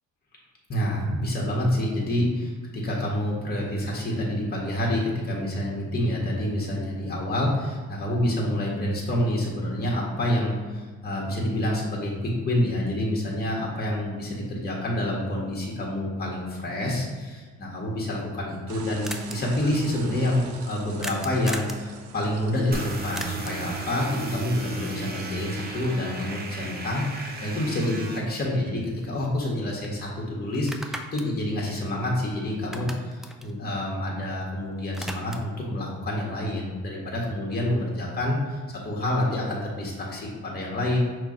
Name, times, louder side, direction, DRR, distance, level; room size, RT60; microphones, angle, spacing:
voice 1, 0.7-41.0, left 1 dB, 30° left, -3 dB, 1.3 m, -28 dB
sound 1, 18.6-18.7 19.0-19.4 21.0-21.8 23.1-23.7 27.9-28.0 28.4-29.5 29.8-30.0 30.5-32.3 32.6-34.4 34.7-35.6, equal, ahead, 0.4 m, -38 dB
sound 2, 18.7-25.7, right 5 dB, 80° right, 0.6 m, -45 dB
sound 3, 22.7-28.2, right 3 dB, 30° right, 0.9 m, -36 dB
5.8 x 2.5 x 3.7 m, 1.4 s
cardioid pair, 90°, 30 cm